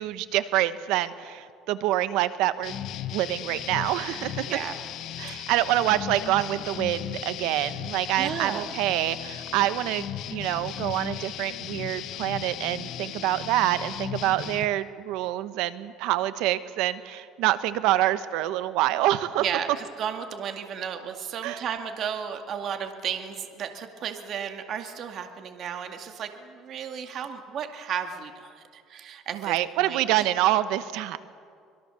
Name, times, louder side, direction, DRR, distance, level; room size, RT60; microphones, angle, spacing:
voice 1, 0.0-2.8 3.1-4.5 5.2-19.4 21.4-21.6 29.4-31.2, right 14 dB, 75° right, 13 dB, 1.1 m, -26 dB
sound 1, 2.6-14.7, left 11 dB, 60° left, 1.0 m, -36 dB
voice 2, 8.2-8.8 19.4-30.3, right 8 dB, 50° right, 6 dB, 2.1 m, -34 dB
25.5 x 22.5 x 7.0 m, 2.3 s
cardioid pair, 130°, 0 cm